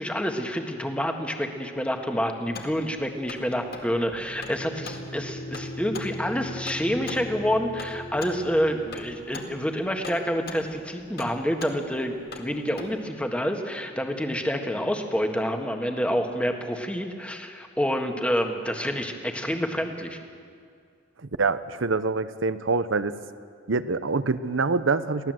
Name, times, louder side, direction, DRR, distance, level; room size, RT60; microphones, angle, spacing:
voice 1, 0.0-20.2, equal, 5° left, 4 dB, 1.5 m, -28 dB
sound 1, 2.4-13.0, left 3 dB, 50° left, 2.0 m, -43 dB
sound 2, 4.1-9.1, left 1 dB, 65° left, 1.9 m, -39 dB
voice 2, 21.2-23.2 23.7-25.3, right 4 dB, 70° right, 14 dB, 0.8 m, -25 dB
23.0 x 16.5 x 7.7 m, 2.3 s
head